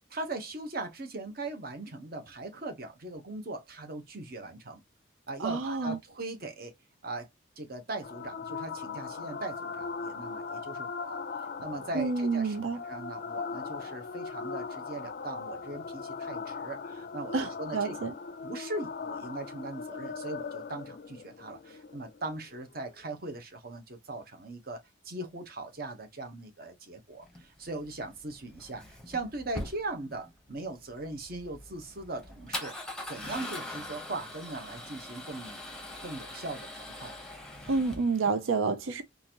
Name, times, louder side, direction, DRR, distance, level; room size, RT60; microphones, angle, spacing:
voice 1, 0.1-4.8 5.3-6.7 7.0-7.3 7.6-11.2 11.6-12.6 12.8-18.1 18.4-32.8 33.1-35.6 36.0-37.1, right 2 dB, 50° right, 0.8 m, -39 dB
voice 2, 5.4-6.0 11.9-12.8 17.3-18.1 37.7-39.0, right 4 dB, 90° right, 0.5 m, -29 dB
sound 1, 8.0-23.0, left 5 dB, 50° left, 0.4 m, -39 dB
Male speech man speaking / Car / Engine starting, 27.2-38.3, left 1 dB, 5° left, 0.8 m, -42 dB
3.8 x 2.5 x 2.8 m
head